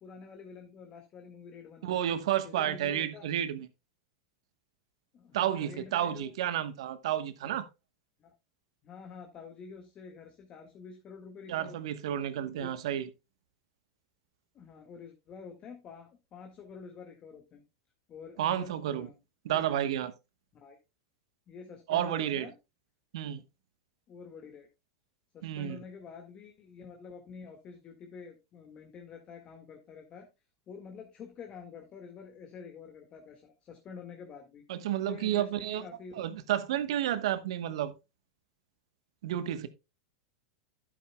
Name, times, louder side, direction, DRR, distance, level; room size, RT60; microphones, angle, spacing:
voice 1, 0.0-2.0 2.4-3.3 5.1-6.3 7.4-7.6 8.2-8.3 8.8-12.0 12.5-12.7 14.5-17.6 18.1-19.2 19.5-19.8 20.5-20.8 21.5-22.5 24.1-24.7 25.3-30.3 30.7-34.6 35.0-36.2, left 5 dB, 35° left, 1.9 m, -48 dB
voice 2, 1.8-3.7 5.3-7.7 11.5-13.1 18.4-19.1 19.4-20.1 21.9-22.5 23.1-23.4 25.4-25.8 34.7-35.8 36.1-37.9 39.2-39.7, right 11 dB, 70° right, 1.2 m, -31 dB
11.5 x 9.0 x 2.3 m
hypercardioid pair, 105°, 3 cm